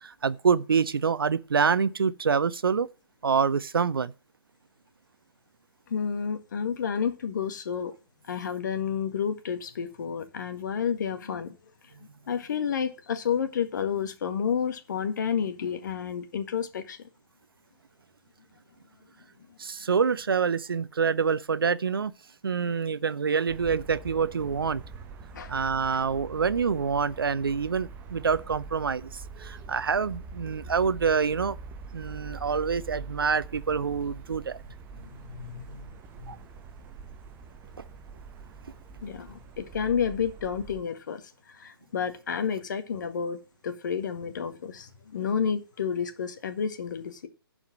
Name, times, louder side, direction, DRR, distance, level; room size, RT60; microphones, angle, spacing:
voice 1, 0.0-2.9 3.2-4.1 19.6-22.1 22.4-24.8 25.5-31.6 31.9-34.6 36.3-36.4, right 6 dB, 65° right, 0.8 m, -26 dB
voice 2, 5.9-7.9 8.3-11.6 12.3-17.0 25.3-25.5 32.1-32.3 35.0-35.9 36.2-36.3 39.0-43.4 43.6-47.3, left 7 dB, 50° left, 1.8 m, -30 dB
sound 1, 23.5-40.8, right 4 dB, 15° right, 0.9 m, -44 dB
11.5 x 5.0 x 7.5 m
figure-of-eight pair, 135°, 13 cm